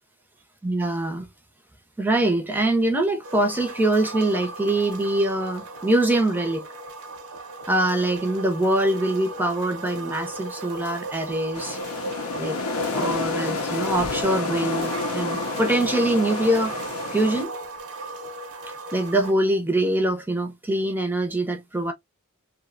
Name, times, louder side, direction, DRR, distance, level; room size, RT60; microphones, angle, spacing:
voice 1, 0.6-1.3 2.0-6.6 7.7-11.8 12.4-16.7 17.1-17.5 18.9-21.9, right 1 dB, 10° right, 0.4 m, -24 dB
sound 1, 3.2-19.3, right 2 dB, 80° right, 0.7 m, -35 dB
sound 2, 11.5-17.4, left 4 dB, 90° left, 0.5 m, -30 dB
2.7 x 2.0 x 2.4 m
head